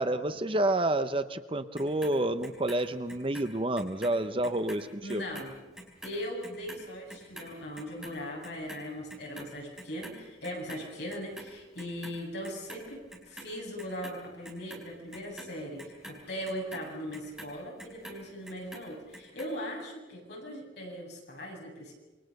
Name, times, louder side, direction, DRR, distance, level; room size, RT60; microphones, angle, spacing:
voice 1, 0.0-5.2, right 1 dB, 25° right, 10 dB, 0.8 m, -29 dB
Clock, 1.8-4.2 4.4-10.8 11.1-12.2 12.4-13.5 13.8-18.2 18.5-19.5 19.8-19.9, right 1 dB, 5° right, 4.7 m, -46 dB
voice 2, 5.0-5.5 6.0-21.9, equal, 55° left, -1 dB, 7.6 m, -39 dB
28.0 x 22.5 x 6.7 m, 1.2 s
head